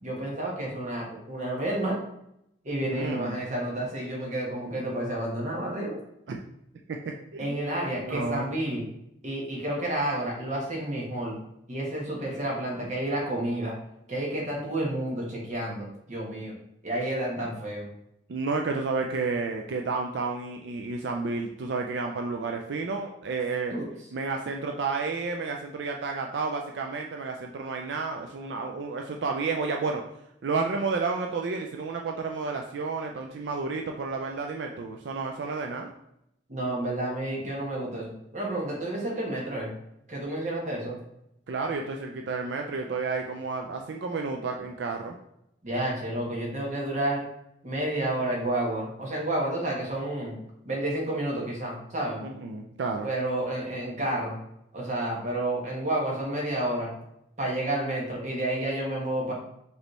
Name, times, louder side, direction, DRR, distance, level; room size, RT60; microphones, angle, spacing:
voice 1, 0.0-2.0 2.6-6.0 7.4-8.8 9.2-11.4 11.7-13.7 14.1-16.5 16.8-17.8 23.7-23.8 36.5-39.7 40.1-40.9 45.6-47.2 47.6-50.3 50.6-52.2 53.0-54.3 54.7-56.9 57.4-59.3, right 1 dB, 40° right, -2 dB, 1.2 m, -30 dB
voice 2, 2.8-3.4 6.3-6.4 6.9-7.0 7.3-7.6 8.0-8.5 18.3-23.8 24.1-30.0 30.4-35.9 41.5-45.2 52.2-53.1, right 4 dB, 75° right, 2 dB, 0.4 m, -31 dB
5.1 x 3.1 x 3.1 m, 0.80 s
head